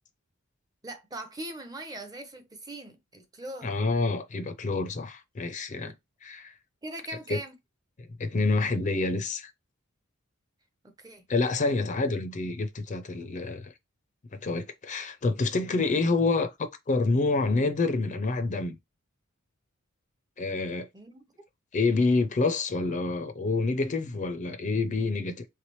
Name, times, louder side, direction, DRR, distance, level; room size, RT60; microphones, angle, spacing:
voice 1, 0.8-3.7 5.7-5.9 6.8-7.5 10.8-11.2 20.9-21.2, right 1 dB, 20° right, 0.6 m, -41 dB
voice 2, 3.6-5.9 6.2-6.5 7.3-7.4 8.2-9.5 11.3-13.7 14.4-18.8 20.4-20.9 21.7-25.5, left 3 dB, 35° left, 0.5 m, -27 dB
3.3 x 3.2 x 3.0 m
head